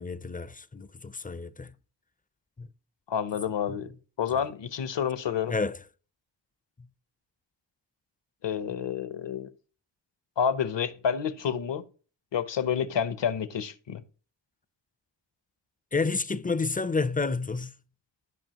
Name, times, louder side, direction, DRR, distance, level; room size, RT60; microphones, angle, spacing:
voice 1, 0.0-1.7 2.6-2.7 3.7-3.8 4.3-4.4 5.5-5.8 15.9-17.7, left 4 dB, 20° left, 0.4 m, -30 dB
voice 2, 3.1-3.9 4.2-5.5 8.4-9.5 10.4-11.8 12.3-14.0, left 8 dB, 70° left, 0.8 m, -29 dB
12.0 x 5.5 x 2.9 m
wide cardioid pair, 85°, 46 cm